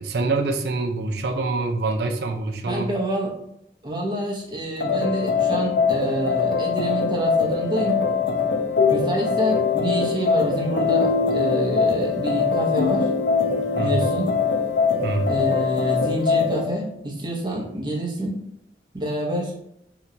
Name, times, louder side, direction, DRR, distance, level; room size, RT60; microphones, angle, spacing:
voice 1, 0.0-2.9 13.7-14.1 15.0-15.4, right 3 dB, 70° right, 4 dB, 0.4 m, -25 dB
voice 2, 2.7-3.3 3.8-8.0 8.9-13.1 13.8-14.3 15.3-18.4 18.9-19.6, right 1 dB, 25° right, -3 dB, 0.7 m, -27 dB
sound 1, 4.8-16.7, left 5 dB, 90° left, 0.5 m, -22 dB
2.8 x 2.2 x 3.7 m, 0.76 s
head